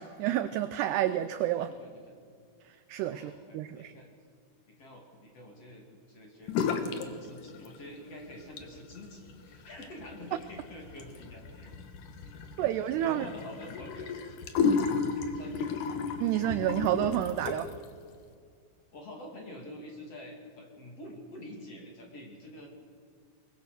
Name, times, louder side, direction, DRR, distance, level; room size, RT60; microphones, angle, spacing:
voice 1, 0.0-1.7 2.9-3.9 12.6-13.3 14.6-14.8 16.2-17.7, right 12 dB, 85° right, 11 dB, 2.4 m, -29 dB
voice 2, 1.6-2.2 3.1-4.1 4.7-11.8 12.6-12.7 13.0-14.2 14.5-14.7 15.2-15.7 18.9-22.7, left 1 dB, 40° left, 1 dB, 2.9 m, -47 dB
sound 1, 6.5-7.1 7.4-8.0 8.4-17.9, left 5 dB, 65° left, 2.2 m, -33 dB
22.5 x 21.5 x 6.7 m, 2.2 s
omnidirectional pair, 5.5 m